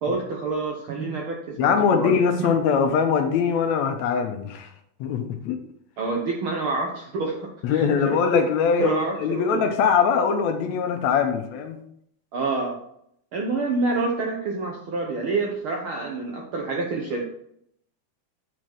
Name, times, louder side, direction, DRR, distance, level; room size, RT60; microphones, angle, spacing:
voice 1, 0.0-2.5 6.0-8.2 8.8-9.7 12.3-12.8 13.3-17.2, right 3 dB, 70° right, 0 dB, 1.3 m, -27 dB
voice 2, 1.6-4.7 5.0-5.6 7.6-11.8, left 6 dB, 75° left, 6 dB, 1.8 m, -22 dB
8.0 x 4.6 x 4.5 m, 0.71 s
omnidirectional pair, 3.5 m